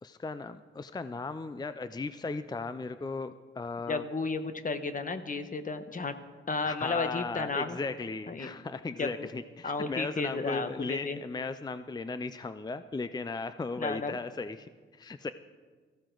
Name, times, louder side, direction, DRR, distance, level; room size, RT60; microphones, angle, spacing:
voice 1, 0.0-4.0 6.6-15.3, left 3 dB, 20° left, 12 dB, 0.5 m, -36 dB
voice 2, 3.9-6.1 6.5-7.8 8.3-8.5 9.0-9.3 9.6-11.2 13.8-14.2, left 3 dB, 40° left, 9 dB, 1.2 m, -33 dB
18.0 x 15.0 x 3.9 m, 1.5 s
cardioid pair, 80°, 21 cm